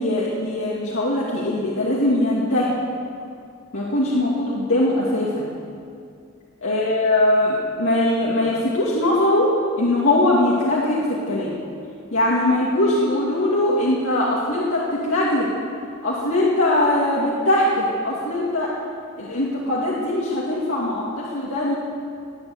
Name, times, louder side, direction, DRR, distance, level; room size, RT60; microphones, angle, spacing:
voice 1, 0.0-2.7 3.7-5.5 6.6-9.5 9.8-11.0 11.3-11.6 12.1-15.5 16.0-18.7 19.1-21.7, left 1 dB, 85° left, -6 dB, 2.4 m, -21 dB
19.0 x 9.3 x 8.0 m, 2.4 s
head